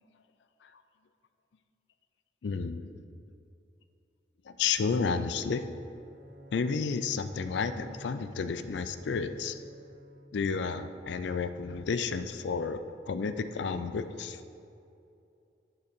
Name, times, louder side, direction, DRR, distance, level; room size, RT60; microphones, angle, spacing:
voice 1, 2.4-2.9 4.5-5.6 6.5-9.6 10.3-12.8 13.1-14.4, left 5 dB, 75° left, 10 dB, 0.4 m, -31 dB
Bowed string instrument, 5.9-10.7, equal, 80° right, 0.6 m, -51 dB
8.3 x 3.9 x 6.6 m, 2.6 s
head